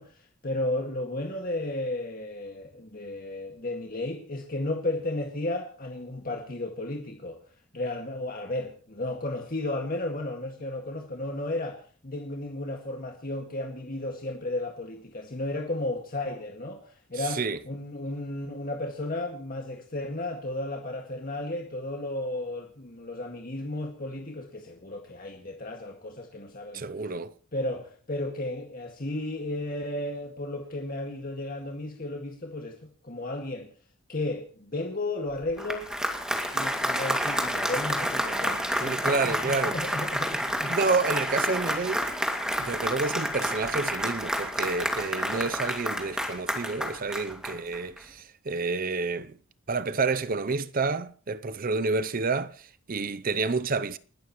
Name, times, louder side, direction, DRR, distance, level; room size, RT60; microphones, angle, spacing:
voice 1, 0.0-27.1 27.5-33.7 34.1-35.9 36.5-40.8 45.3-45.5, left 2 dB, 45° left, 2.0 m, -34 dB
voice 2, 17.2-17.6 26.7-27.3 38.8-39.8 40.6-42.0 42.6-49.4 49.7-54.0, right 4 dB, 45° right, 0.6 m, -29 dB
Applause, 35.4-48.0, equal, 5° right, 2.2 m, -29 dB
29.5 x 12.5 x 3.1 m
head